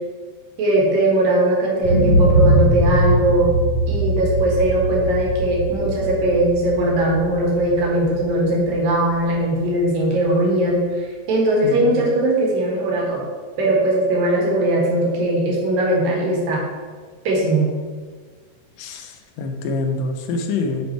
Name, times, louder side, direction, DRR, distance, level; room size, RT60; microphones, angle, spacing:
voice 1, 0.6-3.5 3.9-13.2 13.6-16.6 17.2-17.7, right 1 dB, 90° right, -2 dB, 3.3 m, -19 dB
sound 1, 1.8-9.7 10.1-10.2, right 1 dB, 60° right, 0.6 m, -21 dB
voice 2, 11.6-12.1 18.8-19.1 19.4-20.9, left 3 dB, 90° left, 4 dB, 2.4 m, -25 dB
6.4 x 5.3 x 4.6 m, 1.5 s
omnidirectional pair, 3.8 m